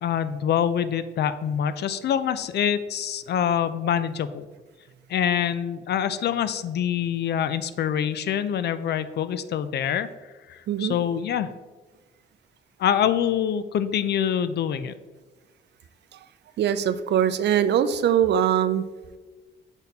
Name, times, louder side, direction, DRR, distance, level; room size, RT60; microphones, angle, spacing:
voice 1, 0.0-4.5 5.1-10.1 10.5-11.5 12.8-14.9, left 9 dB, 60° left, 14 dB, 0.5 m, -25 dB
voice 2, 10.7-11.0 16.6-18.8, right 9 dB, 60° right, 12 dB, 0.5 m, -22 dB
7.0 x 4.2 x 4.0 m, 1.3 s
cardioid pair, 90°, 20 cm